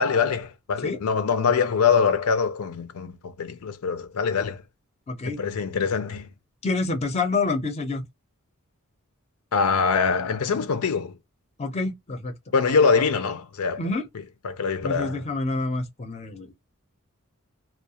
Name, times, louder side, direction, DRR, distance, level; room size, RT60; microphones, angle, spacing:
voice 1, 0.0-4.6 5.3-6.3 9.5-11.2 12.5-13.8 14.4-15.2, left 5 dB, 80° left, 0.5 m, -23 dB
voice 2, 5.1-5.4 6.6-8.0 11.6-12.3 13.8-14.0 14.8-16.5, left 3 dB, 30° left, 0.6 m, -27 dB
2.3 x 2.1 x 2.7 m
head